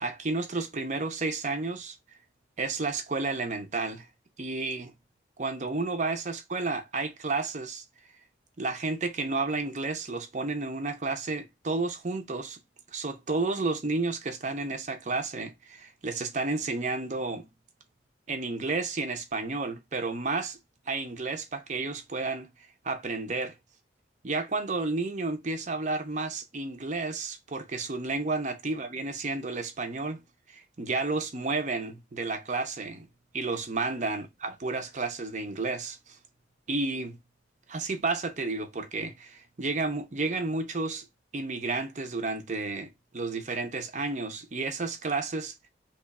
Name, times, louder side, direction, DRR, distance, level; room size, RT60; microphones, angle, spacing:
voice 1, 0.0-1.9 2.6-4.1 4.4-4.9 5.4-7.8 8.6-12.6 12.9-17.5 18.3-20.6 20.9-22.5 22.8-23.5 24.2-30.2 30.5-33.1 33.3-36.2 36.7-37.2 37.7-41.1 41.3-45.7, right 3 dB, 40° right, 0.6 m, -31 dB
2.9 x 2.3 x 4.1 m
head